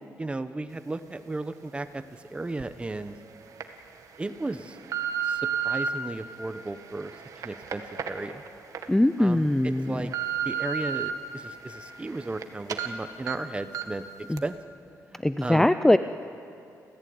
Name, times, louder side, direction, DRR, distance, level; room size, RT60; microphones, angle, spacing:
voice 1, 0.2-3.2 4.2-4.8 5.2-7.1 7.4-8.4 9.2-10.1 10.4-14.0 14.4-14.6 15.1-15.7, right 2 dB, 15° right, 11 dB, 1.0 m, -35 dB
sound 1, 2.6-2.7 3.3-3.6 4.3-5.9 6.5-8.8 9.3-9.4 9.8-11.1 11.5-12.4 12.7-12.9 13.3-13.4 13.7-14.0 14.4-14.5, right 8 dB, 60° right, 1.8 m, -32 dB
voice 2, 8.9-9.9 14.3-14.4 15.2-16.0, left 1 dB, 5° left, 11 dB, 0.5 m, -21 dB
29.5 x 15.0 x 9.6 m, 2.6 s
cardioid pair, 125°, 7 cm